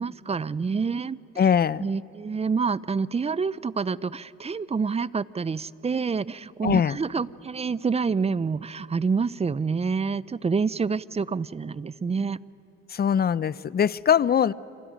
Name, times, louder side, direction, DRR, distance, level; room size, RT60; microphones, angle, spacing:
voice 1, 0.0-1.2 1.8-12.4, right 5 dB, 20° right, 19 dB, 0.4 m, -27 dB
voice 2, 1.4-1.9 6.6-7.0 12.9-14.5, left 8 dB, 30° left, 19 dB, 0.5 m, -22 dB
29.5 x 26.0 x 5.1 m, 2.7 s
cardioid pair, 90°, 30 cm